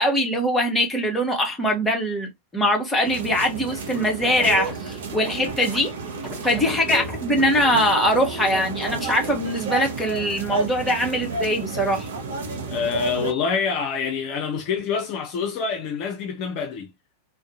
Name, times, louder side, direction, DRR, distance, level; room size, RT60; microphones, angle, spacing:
voice 1, 0.0-5.9 6.4-12.1, equal, 10° left, 1.0 m, -22 dB
sound 1, 3.0-13.3, right 3 dB, 60° right, 0.6 m, -31 dB
Scratching (performance technique), 3.9-5.8 6.2-7.8 8.5-9.2, right 1 dB, 25° right, 1.1 m, -37 dB
voice 2, 6.7-7.1 12.7-16.9, left 6 dB, 40° left, 0.5 m, -27 dB
2.4 x 2.1 x 2.6 m
figure-of-eight pair, 90°, 0 cm